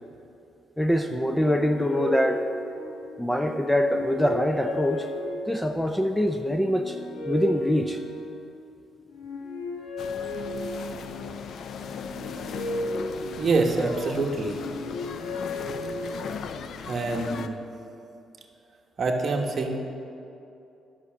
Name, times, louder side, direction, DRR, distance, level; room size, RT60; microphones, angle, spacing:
voice 1, 0.8-2.4 3.2-5.1 5.5-7.0 7.3-8.0, equal, 5° left, 6 dB, 0.5 m, -24 dB
sound 1, 1.2-3.3 3.8-5.8 6.5-8.6 9.1-11.1 11.8-13.9 14.4-16.4, left 1 dB, 90° left, 2.0 m, -34 dB
sound 2, 10.0-17.5, left 6 dB, 65° left, 0.5 m, -37 dB
voice 2, 13.4-14.6 16.8-17.6 19.0-19.8, right 3 dB, 45° right, 2 dB, 1.3 m, -25 dB
11.0 x 6.0 x 7.4 m, 2.7 s
cardioid pair, 90°, 0 cm